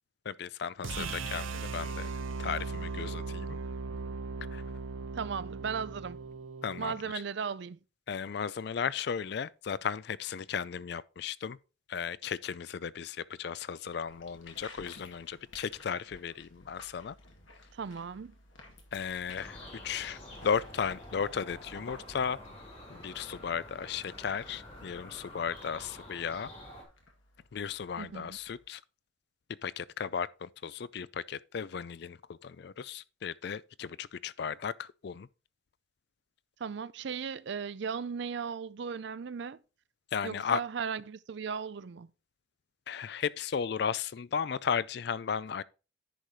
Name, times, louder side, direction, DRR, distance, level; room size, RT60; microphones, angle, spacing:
voice 1, 0.3-2.1 2.4-3.6 4.5-4.7 6.6-7.0 8.1-11.6 11.9-17.2 18.9-19.6 19.8-22.4 22.9-26.5 27.5-28.8 29.6-35.3 40.1-40.6 42.9-45.6, left 7 dB, 55° left, 0.4 m, -35 dB
sound 1, 0.8-7.0, right 4 dB, 85° right, 0.8 m, -38 dB
voice 2, 5.1-6.2 6.8-7.8 17.7-18.3 28.0-28.4 36.6-39.6 40.2-42.1, right 6 dB, 60° right, 0.4 m, -36 dB
sound 2, 14.1-28.7, left 2 dB, 80° left, 2.2 m, -55 dB
sound 3, 19.4-26.8, left 1 dB, 30° left, 2.6 m, -48 dB
10.0 x 4.9 x 4.1 m
head